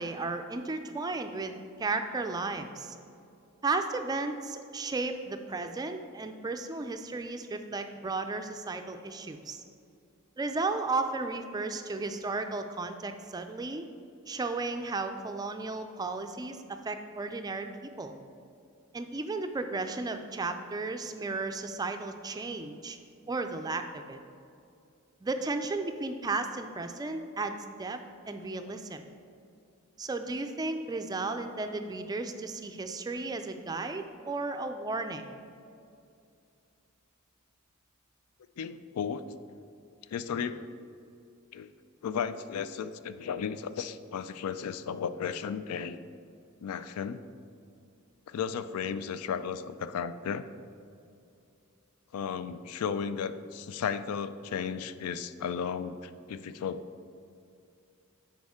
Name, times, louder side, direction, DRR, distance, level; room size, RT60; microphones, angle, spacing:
voice 1, 0.0-3.0 3.6-9.6 10.4-13.9 14.3-18.1 18.9-23.0 23.3-24.2 25.2-28.0 28.3-29.0 30.0-35.2, right 3 dB, 20° right, 7 dB, 0.3 m, -34 dB
voice 2, 38.6-39.2 40.1-40.7 41.5-41.7 42.0-46.0 46.6-47.2 48.3-50.5 52.1-57.1, left 7 dB, 80° left, 13 dB, 0.3 m, -34 dB
10.5 x 4.4 x 3.6 m, 2.5 s
head